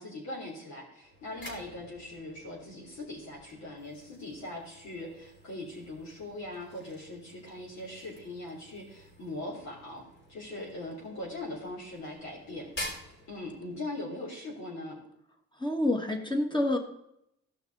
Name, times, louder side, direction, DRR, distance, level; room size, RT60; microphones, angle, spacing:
voice 1, 0.0-10.0 10.3-12.9 13.3-15.0, left 1 dB, 65° left, -4 dB, 3.5 m, -41 dB
sound 1, 1.0-14.0, left 1 dB, 40° left, 3.7 m, -48 dB
voice 2, 15.6-16.8, left 1 dB, 15° left, 4 dB, 1.9 m, -27 dB
15.5 x 5.9 x 4.1 m, 0.78 s
cardioid pair, 90°, 30 cm